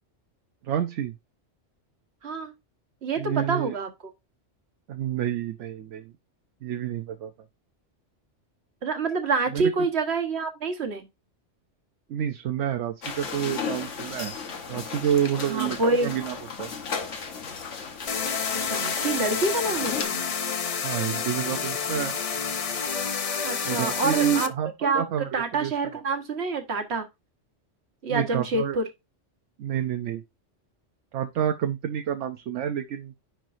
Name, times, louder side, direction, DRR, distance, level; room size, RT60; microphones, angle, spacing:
voice 1, 0.6-1.1 3.2-3.7 4.9-6.1 6.6-7.3 9.5-9.9 12.1-14.4 14.7-16.7 20.8-22.1 23.6-25.7 28.1-28.8 29.6-30.2 31.1-33.1, right 10 dB, 80° right, 1.0 m, -29 dB
voice 2, 3.0-3.9 8.8-11.1 15.4-16.1 18.5-20.2 23.4-24.5 24.8-27.1 28.0-28.8, right 3 dB, 60° right, 1.6 m, -27 dB
sound 1, 13.0-20.0, left 5 dB, 80° left, 1.5 m, -35 dB
sound 2, 18.1-24.5, left 6 dB, 45° left, 0.5 m, -29 dB
10.5 x 4.5 x 2.6 m
omnidirectional pair, 1.2 m